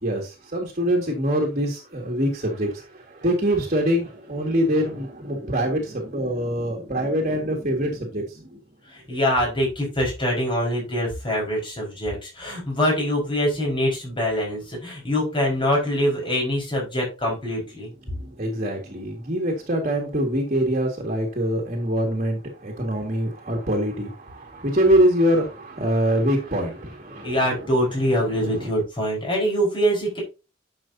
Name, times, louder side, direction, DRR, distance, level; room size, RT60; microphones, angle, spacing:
voice 1, 0.0-8.6 18.1-27.6 28.5-28.7, equal, 40° right, 0 dB, 2.0 m, -24 dB
voice 2, 8.9-17.9 27.2-30.2, equal, 25° left, -2 dB, 5.0 m, -24 dB
11.0 x 6.8 x 2.8 m, 0.29 s
head